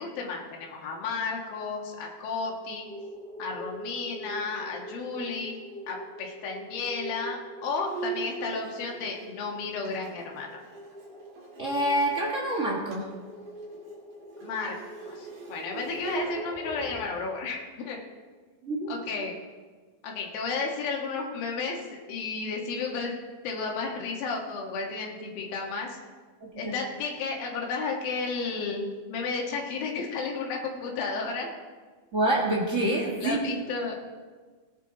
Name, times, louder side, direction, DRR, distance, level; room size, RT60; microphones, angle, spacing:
voice 1, 0.0-2.9 3.4-5.6 5.9-10.6 14.4-14.8 15.1-18.0 18.9-19.3 20.0-21.8 22.1-23.2 23.4-26.0 26.6-31.5 33.2-34.0, left 4 dB, 80° left, 0 dB, 3.3 m, -33 dB
sound 1, 2.8-17.1, right 1 dB, 5° left, 1.9 m, -43 dB
Bowed string instrument, 7.9-12.2 12.5-12.6 12.9-13.2 13.5-16.3, right 5 dB, 70° right, 3.9 m, -40 dB
voice 2, 11.6-13.1 18.6-18.9 26.4-26.7 32.1-33.3, right 1 dB, 40° right, -2 dB, 1.0 m, -27 dB
17.5 x 9.3 x 3.9 m, 1.4 s
omnidirectional pair, 4.1 m